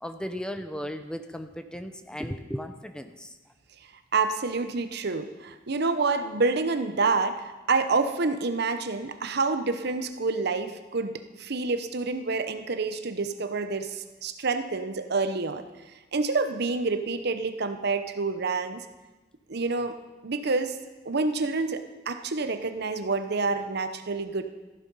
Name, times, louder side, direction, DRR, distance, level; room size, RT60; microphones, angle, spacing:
voice 1, 0.0-3.4, equal, 5° left, 8 dB, 0.6 m, -36 dB
voice 2, 4.1-15.6 16.1-18.8 19.5-20.0 20.2-20.8 21.0-24.4, right 3 dB, 60° right, 9 dB, 0.9 m, -28 dB
14.0 x 11.0 x 5.5 m, 1.2 s
head